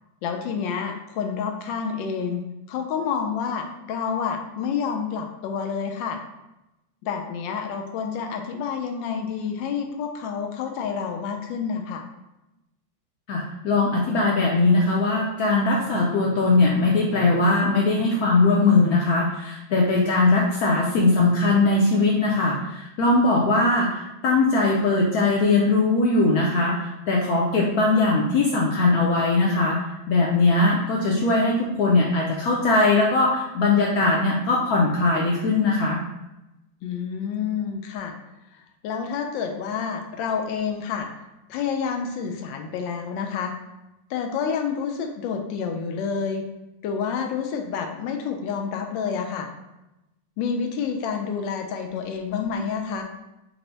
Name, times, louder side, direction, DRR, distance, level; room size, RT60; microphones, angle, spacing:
voice 1, 0.2-2.4 2.7-6.2 7.0-12.0 30.7-30.8 36.8-38.1 38.8-41.1 41.5-43.5 44.1-46.4 46.8-49.5 50.4-53.0, left 6 dB, 90° left, 4 dB, 1.3 m, -28 dB
voice 2, 13.3-36.0, left 3 dB, 70° left, -2 dB, 0.9 m, -20 dB
4.4 x 2.0 x 3.9 m, 0.95 s
omnidirectional pair, 2.0 m